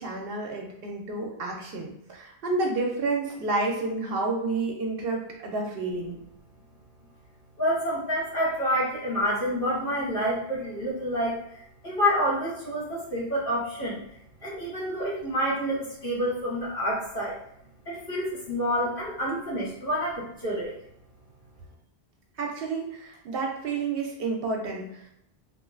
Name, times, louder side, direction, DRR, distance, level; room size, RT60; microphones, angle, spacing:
voice 1, 0.0-6.1 22.4-25.1, right 3 dB, 65° right, 1 dB, 0.7 m, -30 dB
voice 2, 7.6-14.0 14.4-17.3 17.8-20.7, equal, 55° left, -8 dB, 1.5 m, -28 dB
3.0 x 2.4 x 2.4 m, 0.77 s
omnidirectional pair, 1.1 m